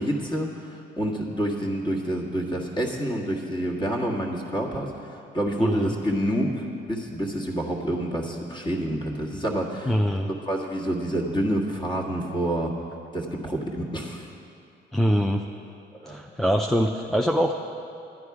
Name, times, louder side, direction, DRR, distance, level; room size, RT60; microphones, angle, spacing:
voice 1, 0.0-9.9 10.2-12.7 13.1-14.3 16.0-16.2, right 1 dB, 25° left, -1 dB, 1.7 m, -28 dB
voice 2, 5.6-5.9 9.9-10.3 14.9-15.4 16.1-17.5, equal, ahead, 2 dB, 0.4 m, -23 dB
11.5 x 9.7 x 4.8 m, 2.6 s
cardioid pair, 90°, 20 cm